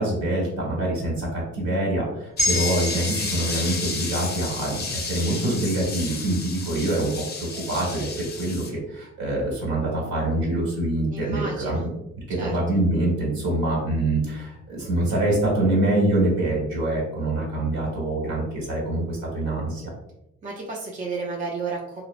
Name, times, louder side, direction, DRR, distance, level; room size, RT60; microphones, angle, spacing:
voice 1, 0.0-7.1 7.5-11.8 12.3-19.8, right 1 dB, 65° right, -3 dB, 1.3 m, -25 dB
sound 1, 2.4-8.7, left 4 dB, 35° left, 0.5 m, -32 dB
sound 2, 2.4-6.9 7.3-7.4, left 1 dB, 5° left, 1.1 m, -32 dB
voice 2, 11.1-11.9 12.4-12.6 20.4-22.0, right 4 dB, 25° right, -2 dB, 0.4 m, -32 dB
2.8 x 2.0 x 2.4 m, 0.86 s
cardioid pair, 90°, 30 cm